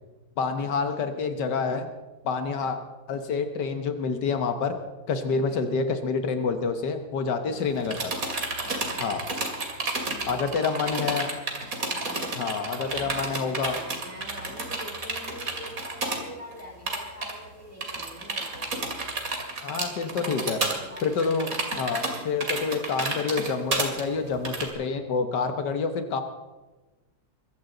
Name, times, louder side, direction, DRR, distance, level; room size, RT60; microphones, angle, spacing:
voice 1, 0.4-1.9 2.3-2.8 3.1-4.8 5.1-8.1 9.0-9.2 10.3-11.3 12.3-13.8 19.6-20.6 21.0-26.2, left 5 dB, 80° left, 7 dB, 1.8 m, -28 dB
voice 2, 5.3-5.7 8.6-9.2 10.2-11.4 11.9-12.3 12.7-18.7 20.2-21.5, equal, 10° left, -1 dB, 4.6 m, -45 dB
sound 1, 7.6-16.2 16.5-16.6 16.9-17.3 17.8-24.7, right 3 dB, 55° right, 2.8 m, -31 dB
23.0 x 15.0 x 3.9 m, 1.2 s
omnidirectional pair, 1.8 m